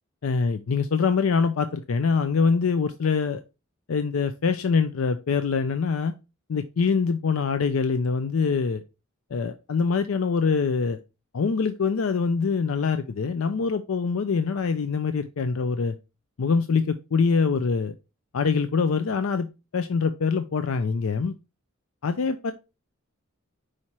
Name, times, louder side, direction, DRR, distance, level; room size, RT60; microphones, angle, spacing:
voice 1, 0.2-3.4 3.9-6.1 6.5-8.8 9.3-11.0 11.3-15.9 16.4-17.9 18.3-19.5 19.7-21.3 22.0-22.5, left 5 dB, 85° left, 10 dB, 0.5 m, -24 dB
4.9 x 4.2 x 4.5 m, 0.28 s
head